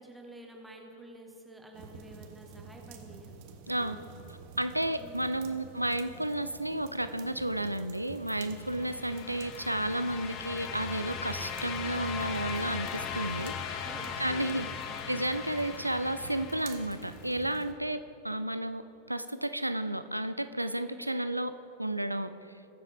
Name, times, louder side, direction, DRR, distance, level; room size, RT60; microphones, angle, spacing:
voice 1, 0.0-3.3 3.7-4.0 5.0-5.5 8.8-9.2 13.8-15.1 20.8-21.1, right 1 dB, 5° right, 1 dB, 1.4 m, -50 dB
sound 1, 1.7-17.7, right 6 dB, 45° right, 0.9 m, -49 dB
voice 2, 4.6-13.9 14.2-14.7 15.1-18.8 19.1-21.5 21.8-22.3, right 1 dB, 85° right, 11 dB, 0.4 m, -32 dB
sound 2, 8.4-17.3, left 7 dB, 40° left, 0.8 m, -39 dB
20.5 x 7.2 x 3.4 m, 3.0 s
figure-of-eight pair, 90°, 0 cm